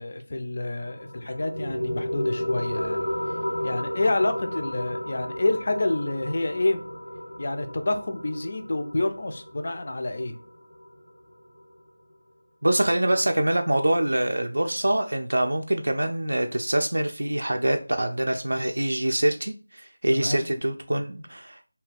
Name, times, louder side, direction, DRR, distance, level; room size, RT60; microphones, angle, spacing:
voice 1, 0.0-3.1 3.6-6.8 7.4-10.4 20.1-20.5, left 2 dB, 40° left, 7 dB, 0.4 m, -28 dB
sound 1, 0.8-11.8, left 1 dB, 85° left, 1.6 m, -33 dB
voice 2, 12.6-21.7, right 1 dB, 90° right, 4 dB, 0.3 m, -25 dB
2.7 x 2.2 x 3.3 m, 0.39 s
figure-of-eight pair, 175°, 0 cm